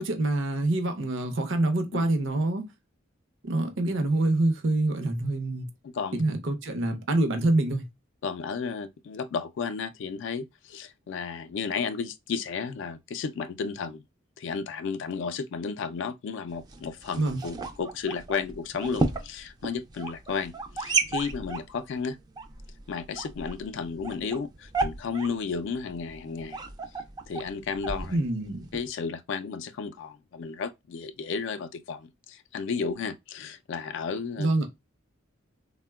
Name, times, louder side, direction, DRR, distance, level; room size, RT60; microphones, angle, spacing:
voice 1, 0.0-2.6 3.4-5.7 6.1-7.8 17.1-17.4 28.1-28.7 34.4-34.7, right 2 dB, 65° right, 0.6 m, -26 dB
voice 2, 5.8-6.2 8.2-14.0 14.4-22.2 22.9-26.6 27.3-28.2 28.7-34.5, left 5 dB, 65° left, 0.3 m, -33 dB
sound 1, 16.5-28.9, right 3 dB, 20° right, 0.4 m, -34 dB
3.5 x 2.1 x 2.2 m
head